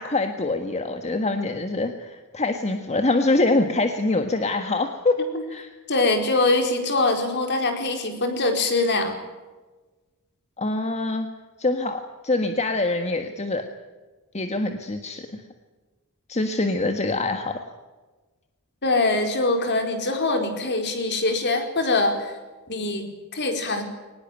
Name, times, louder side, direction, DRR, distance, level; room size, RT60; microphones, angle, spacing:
voice 1, 0.0-5.2 5.5-5.7 10.6-11.3 11.6-13.7 14.3-15.4 16.3-17.6, left 2 dB, 30° left, 6 dB, 1.6 m, -24 dB
voice 2, 5.9-9.2 18.8-22.3 22.7-23.8, left 2 dB, 50° left, 5 dB, 4.6 m, -23 dB
23.0 x 20.0 x 9.2 m, 1.2 s
head